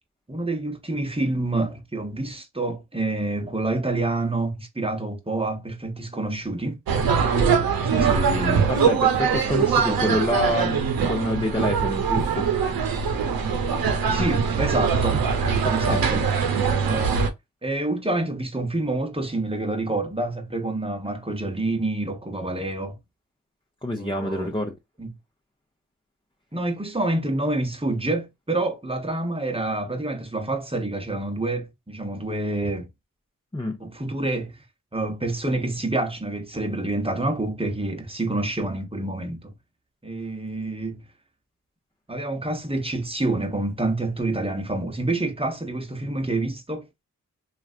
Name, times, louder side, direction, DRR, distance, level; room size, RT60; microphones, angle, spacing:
voice 1, 0.3-6.8 7.4-8.7 9.4-10.2 14.1-15.3 15.6-16.3 16.8-17.2 17.6-23.0 24.0-24.5 25.0-25.1 26.5-32.9 33.8-34.6 34.9-39.5 40.0-41.0 42.1-46.9, right 2 dB, 15° right, 1.1 m, -27 dB
sound 1, 6.9-17.3, right 6 dB, 85° right, 0.7 m, -22 dB
voice 2, 8.7-12.5 15.6-16.0 23.8-24.7 33.5-33.8, left 1 dB, 15° left, 0.9 m, -27 dB
3.0 x 2.5 x 2.5 m
cardioid pair, 40°, 35 cm